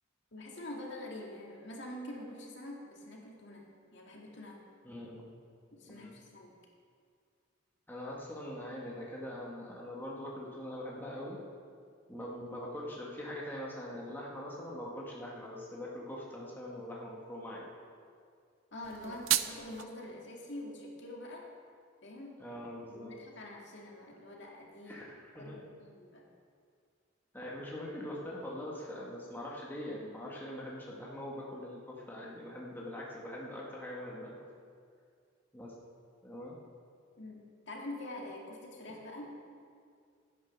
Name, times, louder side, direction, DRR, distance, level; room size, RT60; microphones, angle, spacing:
voice 1, 0.3-4.6 5.7-6.5 18.7-21.5 22.0-22.5 22.9-25.0 25.4-26.3 37.2-39.3, left 1 dB, 65° left, -1 dB, 2.1 m, -45 dB
voice 2, 4.8-5.3 5.9-6.2 7.9-11.4 12.1-17.7 22.4-23.1 24.8-25.6 27.3-34.3 35.5-35.7 36.2-36.6, left 1 dB, 10° left, -4 dB, 1.7 m, -42 dB
sound 1, 18.8-19.8, right 13 dB, 80° right, 0.5 m, -32 dB
13.0 x 9.6 x 6.0 m, 2.2 s
head